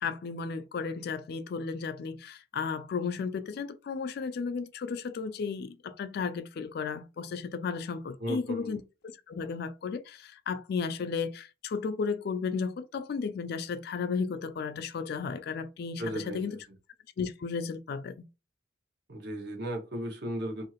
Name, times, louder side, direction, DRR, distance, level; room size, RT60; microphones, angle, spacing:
voice 1, 0.0-8.8 9.3-16.5 17.2-18.3, left 5 dB, 50° left, 0.3 m, -34 dB
voice 2, 8.2-8.8 16.0-16.8 19.1-20.6, right 1 dB, 55° right, 0.9 m, -36 dB
2.7 x 2.4 x 2.8 m
head